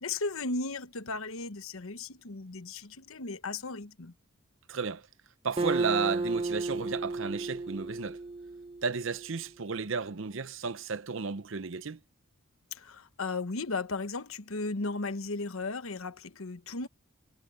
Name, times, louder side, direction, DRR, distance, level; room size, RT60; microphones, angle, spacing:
voice 1, 0.0-4.1 12.7-16.9, left 3 dB, 80° left, 1.2 m, -35 dB
voice 2, 4.7-5.0 5.4-8.2 8.8-12.0, right 5 dB, 65° right, 0.7 m, -33 dB
Acoustic guitar, 5.6-9.2, right 3 dB, 25° right, 0.9 m, -33 dB
head